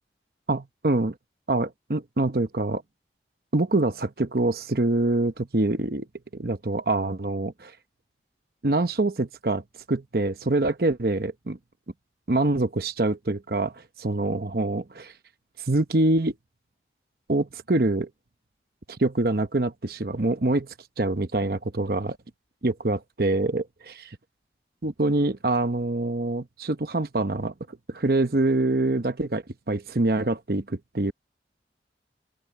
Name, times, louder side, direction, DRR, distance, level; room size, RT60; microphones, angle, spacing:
voice 1, 0.5-1.1 1.5-2.8 3.5-6.1 6.3-7.7 8.6-9.6 9.9-11.6 12.3-15.1 15.6-16.3 17.3-18.1 19.0-20.7 21.0-22.2 22.6-24.2 24.8-31.1, right 2 dB, 55° right, 0.9 m, -25 dB
open air
head